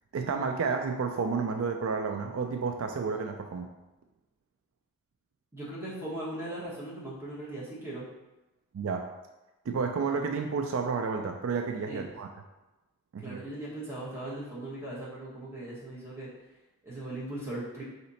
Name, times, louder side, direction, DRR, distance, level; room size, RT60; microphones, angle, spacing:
voice 1, 0.1-3.7 8.7-9.1 9.7-12.3 13.1-13.4, right 5 dB, 70° right, 4 dB, 0.3 m, -31 dB
voice 2, 5.5-8.1 11.9-12.0 13.2-16.3 16.8-17.8, right 1 dB, 10° right, -8 dB, 1.2 m, -39 dB
4.1 x 2.8 x 4.1 m, 1.0 s
head